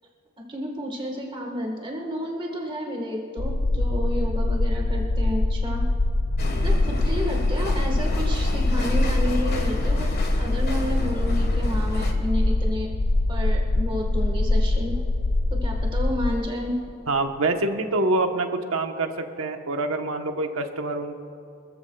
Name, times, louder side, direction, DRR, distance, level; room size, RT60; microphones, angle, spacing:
voice 1, 0.5-5.8 6.6-10.1 10.3-12.9 13.3-15.0 15.5-16.7, equal, 25° right, 0 dB, 1.5 m, -31 dB
sound 1, 3.4-16.3, left 2 dB, 80° left, 0.7 m, -23 dB
sound 2, 6.4-12.1, left 2 dB, 50° left, 1.5 m, -34 dB
voice 2, 6.4-6.8 17.1-21.3, right 2 dB, 70° right, 5 dB, 1.1 m, -26 dB
26.0 x 14.0 x 2.3 m, 2.5 s
head